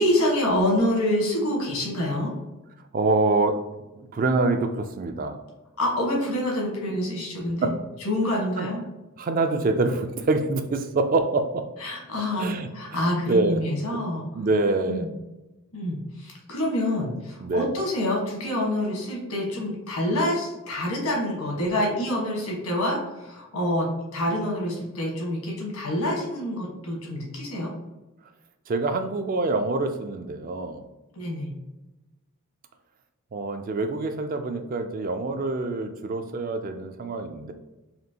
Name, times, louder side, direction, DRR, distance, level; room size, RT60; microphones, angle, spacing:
voice 1, 0.0-2.3 5.8-7.7 8.0-8.8 11.8-14.3 14.9-15.1 15.7-27.7 31.2-31.5, left 1 dB, 85° left, -1 dB, 1.4 m, -26 dB
voice 2, 2.9-3.6 3.9-5.4 7.6-7.8 8.6-8.7 9.2-11.7 12.4-13.6 13.9-15.1 17.4-17.7 28.7-30.8 33.3-37.5, right 3 dB, 40° right, 7 dB, 0.3 m, -26 dB
4.3 x 2.9 x 2.8 m, 1.0 s
head